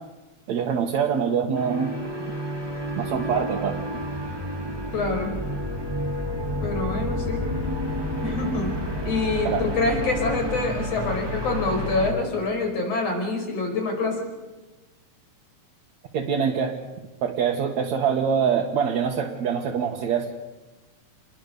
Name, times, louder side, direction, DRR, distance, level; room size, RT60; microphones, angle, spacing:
voice 1, 0.5-2.0 2.9-3.8 9.4-9.6 16.1-16.8 17.2-20.3, right 7 dB, 70° right, 0 dB, 2.9 m, -24 dB
sound 1, 1.5-12.1, equal, 10° right, 1.6 m, -30 dB
voice 2, 4.9-5.4 6.6-7.5 8.2-14.2, left 3 dB, 55° left, 3 dB, 6.2 m, -26 dB
28.5 x 21.0 x 6.8 m, 1.2 s
omnidirectional pair, 3.3 m